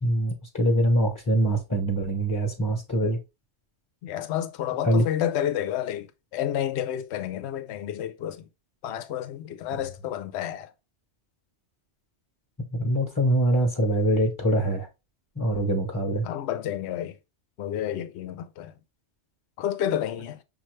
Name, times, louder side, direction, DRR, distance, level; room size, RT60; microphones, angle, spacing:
voice 1, 0.0-3.2 4.9-5.0 12.6-14.9 15.4-16.3, right 1 dB, 20° left, 0.9 m, -24 dB
voice 2, 4.0-8.5 8.8-10.7 16.2-17.2 17.6-18.8 19.6-20.4, left 10 dB, 75° left, 0.9 m, -30 dB
6.5 x 2.6 x 3.1 m
omnidirectional pair, 1.2 m